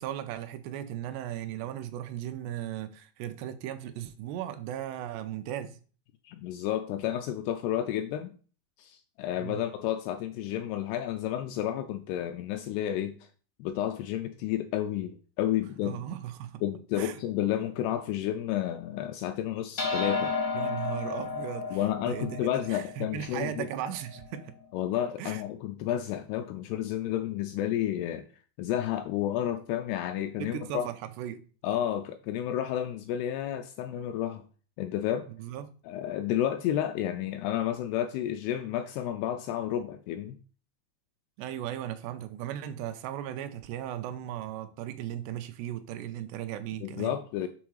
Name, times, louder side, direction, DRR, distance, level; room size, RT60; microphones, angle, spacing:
voice 1, 0.0-5.8 9.4-9.6 15.8-16.6 17.0-17.2 20.5-24.5 25.2-25.4 30.4-31.5 35.4-35.7 41.4-47.1, right 11 dB, 80° right, 2.6 m, -37 dB
voice 2, 6.2-8.3 8.8-13.2 13.6-16.0 16.6-20.4 21.7-23.7 24.7-28.3 28.6-30.9 31.6-34.4 34.8-35.3 35.9-40.4 46.8-47.5, left 11 dB, 85° left, 2.3 m, -31 dB
sound 1, 19.8-24.4, left 4 dB, 65° left, 0.7 m, -33 dB
7.1 x 3.8 x 6.3 m
omnidirectional pair, 5.1 m